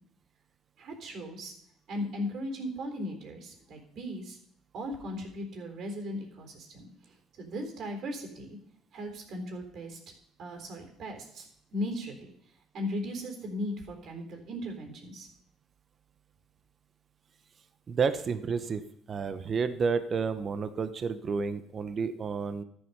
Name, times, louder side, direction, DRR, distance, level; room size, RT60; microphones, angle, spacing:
voice 1, 0.8-1.5 1.9-4.4 4.7-6.9 7.4-8.6 8.9-10.0 10.4-12.3 12.7-15.3, left 1 dB, 60° right, 4 dB, 3.8 m, -37 dB
voice 2, 17.9-18.8 19.1-22.6, right 5 dB, 45° right, 11 dB, 1.0 m, -30 dB
13.0 x 8.1 x 5.6 m, 0.70 s
supercardioid pair, 70°, 0 cm